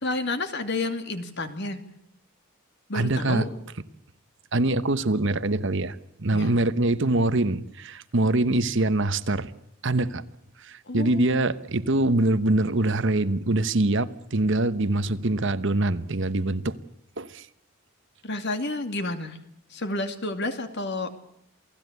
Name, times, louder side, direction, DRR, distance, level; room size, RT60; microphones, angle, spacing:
voice 1, 0.0-1.8 2.9-3.5 6.3-6.6 10.9-11.5 18.2-19.4 19.7-21.1, left 2 dB, 50° left, 8 dB, 2.5 m, -30 dB
voice 2, 2.9-3.5 4.5-9.5 9.8-10.2 10.6-16.8 17.2-17.5, right 2 dB, 55° right, 13 dB, 1.1 m, -24 dB
28.5 x 18.5 x 8.2 m, 0.75 s
head